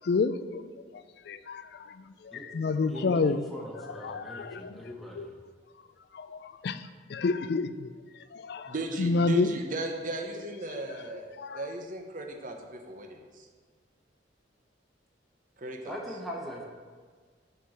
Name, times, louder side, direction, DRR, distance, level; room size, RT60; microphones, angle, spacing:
voice 1, 0.0-0.6 1.3-1.7 2.4-3.4 4.0-4.8 5.2-5.3 6.1-6.8 7.1-7.9 8.3-9.5 11.4-11.6, left 4 dB, 60° left, 12 dB, 0.4 m, -29 dB
voice 2, 2.9-5.3 15.8-16.6, equal, ahead, -3 dB, 1.1 m, -41 dB
voice 3, 8.7-12.5 12.9-13.5 15.6-16.0, right 2 dB, 45° right, 3 dB, 0.9 m, -36 dB
6.6 x 4.7 x 6.4 m, 1.5 s
head